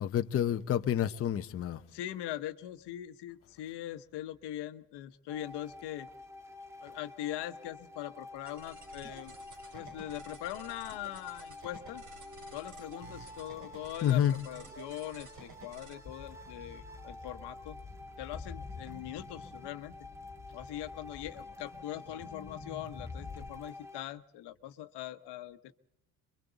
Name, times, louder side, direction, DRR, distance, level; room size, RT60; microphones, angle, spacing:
voice 1, 0.0-1.8 14.0-14.3, left 10 dB, 35° left, 0.7 m, -28 dB
voice 2, 1.9-6.1 6.8-9.3 9.7-12.0 12.5-17.8 18.2-19.9 20.5-25.7, left 13 dB, 85° left, 1.1 m, -42 dB
sound 1, 5.3-24.1, left 2 dB, 5° right, 1.5 m, -49 dB
sound 2, 8.5-15.9, right 3 dB, 50° right, 4.7 m, -52 dB
sound 3, 16.0-23.5, left 4 dB, 20° left, 1.5 m, -48 dB
27.5 x 23.5 x 4.0 m
cardioid pair, 150°, 40 cm